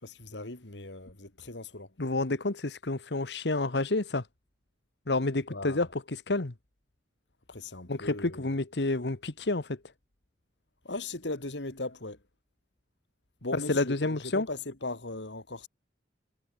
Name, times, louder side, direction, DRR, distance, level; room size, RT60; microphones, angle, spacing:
voice 1, 0.0-1.9 5.5-5.9 7.5-8.5 10.8-12.2 13.4-15.7, left 2 dB, 85° left, 2.8 m, -38 dB
voice 2, 2.0-4.3 5.1-6.5 7.9-9.8 13.5-14.5, left 2 dB, 70° left, 1.3 m, -29 dB
head